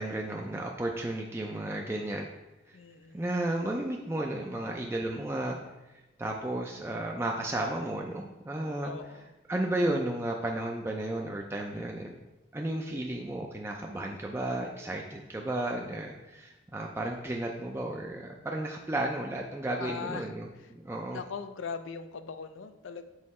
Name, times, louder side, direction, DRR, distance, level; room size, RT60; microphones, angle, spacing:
voice 1, 0.0-2.3 2.7-2.8 3.1-5.6 5.9-8.9 9.5-12.1 12.5-21.2, right 1 dB, 15° right, 0 dB, 0.4 m, -33 dB
voice 2, 2.7-3.2 8.8-9.3 19.8-20.3 21.1-23.0, left 5 dB, 85° left, 10 dB, 0.5 m, -40 dB
6.4 x 3.8 x 4.2 m, 1.0 s
head